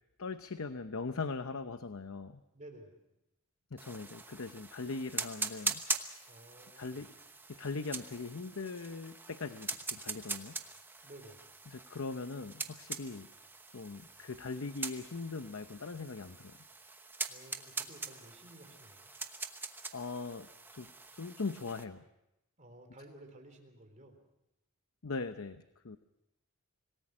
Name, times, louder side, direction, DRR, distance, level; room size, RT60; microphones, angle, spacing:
voice 1, 0.0-2.4 3.7-5.8 6.8-7.1 7.6-10.6 11.7-13.3 13.7-16.6 19.9-22.0 25.0-26.0, left 4 dB, 70° left, 10 dB, 0.8 m, -40 dB
voice 2, 2.5-3.0 6.3-7.1 11.0-11.6 17.3-19.1 22.6-24.3, right 1 dB, 35° right, 4 dB, 3.6 m, -54 dB
sound 1, 3.8-21.9, right 3 dB, 10° right, 1.0 m, -42 dB
26.0 x 18.5 x 6.2 m, 0.88 s
head